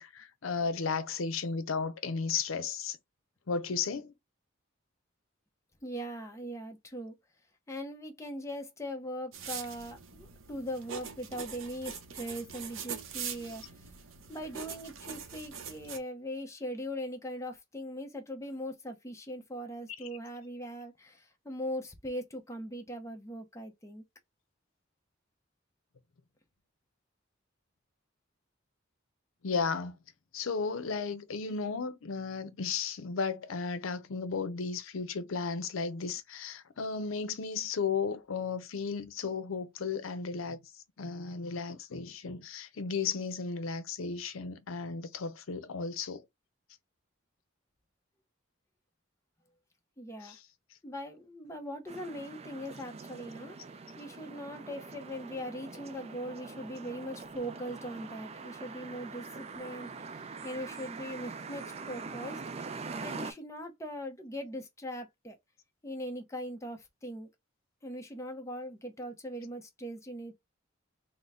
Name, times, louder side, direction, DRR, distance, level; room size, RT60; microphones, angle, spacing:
voice 1, 0.0-3.0 3.5-4.1 29.4-30.0 30.3-40.6 41.0-46.2 50.2-50.4, left 5 dB, 85° left, 0.6 m, -34 dB
voice 2, 5.8-7.1 7.7-13.6 14.3-24.0 50.0-50.4 50.8-53.6 54.0-60.1 60.4-65.4 65.8-67.3 67.8-70.3, equal, 15° left, 0.7 m, -40 dB
sound 1, 9.3-16.0, right 7 dB, 85° right, 0.7 m, -43 dB
sound 2, 51.9-63.3, right 4 dB, 30° right, 0.4 m, -43 dB
3.9 x 2.1 x 3.4 m
head